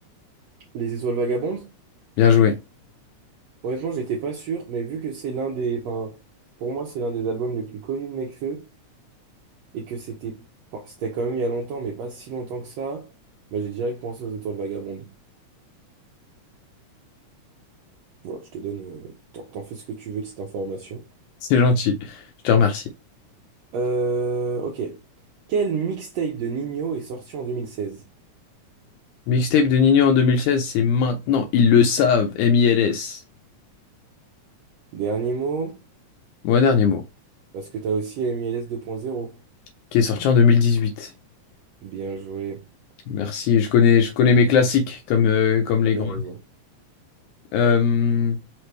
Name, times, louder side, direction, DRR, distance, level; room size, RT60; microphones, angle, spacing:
voice 1, 0.7-1.7 3.6-6.2 6.6-8.6 9.7-10.4 10.7-13.1 13.5-15.1 18.2-21.0 23.7-25.0 25.5-28.0 34.9-35.8 37.5-39.4 41.8-42.6 45.8-46.4, right 4 dB, 70° right, 1.7 m, -29 dB
voice 2, 2.2-2.6 21.5-22.8 29.3-33.2 36.4-37.0 39.9-41.1 43.1-46.2 47.5-48.4, left 6 dB, 85° left, 2.0 m, -18 dB
4.9 x 3.1 x 3.2 m
omnidirectional pair, 3.4 m